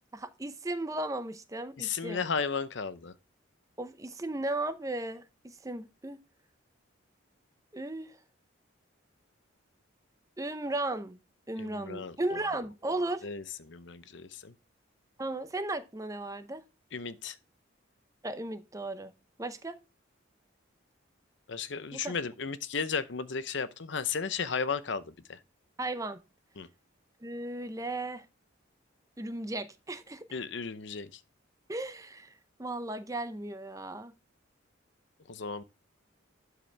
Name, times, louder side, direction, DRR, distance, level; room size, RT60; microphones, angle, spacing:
voice 1, 0.1-2.2 3.8-6.2 7.7-8.2 10.4-11.2 11.5-13.2 15.2-16.6 18.2-19.1 19.4-19.8 21.9-22.2 25.8-26.2 27.2-28.3 29.2-30.3 31.7-32.3 32.6-34.1, right 2 dB, 15° right, 0.6 m, -35 dB
voice 2, 1.8-3.1 11.6-12.4 13.2-14.5 16.9-17.4 21.5-25.4 26.6-26.7 30.3-31.2 35.3-35.6, left 5 dB, 60° left, 0.7 m, -34 dB
12.0 x 4.9 x 3.3 m
head